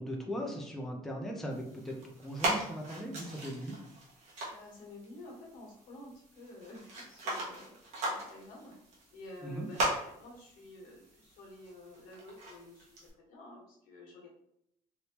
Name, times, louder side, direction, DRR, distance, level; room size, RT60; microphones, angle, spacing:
voice 1, 0.0-3.8 9.4-9.7, equal, ahead, 0 dB, 0.4 m, -39 dB
sound 1, 1.5-13.1, right 1 dB, 55° right, 1.1 m, -39 dB
voice 2, 4.5-12.9 13.2-14.3, left 2 dB, 80° left, -2 dB, 1.3 m, -51 dB
3.4 x 2.6 x 2.8 m, 0.75 s
cardioid pair, 170°, 14 cm